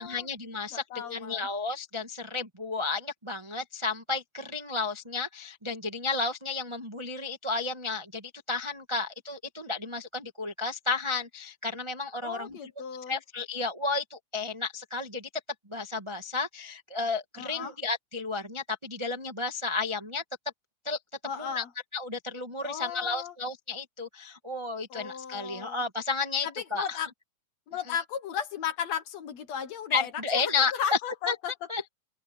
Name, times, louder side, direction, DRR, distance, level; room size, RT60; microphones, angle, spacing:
voice 1, 0.0-12.6 13.1-15.3 15.7-20.2 20.8-21.0 21.4-21.6 21.9-27.0 29.9-30.7 31.3-31.4 31.7-31.9, left 4 dB, 25° right, 0.6 m, -32 dB
voice 2, 0.7-1.5 12.2-13.2 17.4-17.7 21.2-21.7 22.6-23.3 24.9-25.8 26.4-27.1 27.7-31.5, left 8 dB, 60° left, 2.3 m, -35 dB
omnidirectional pair, 3.9 m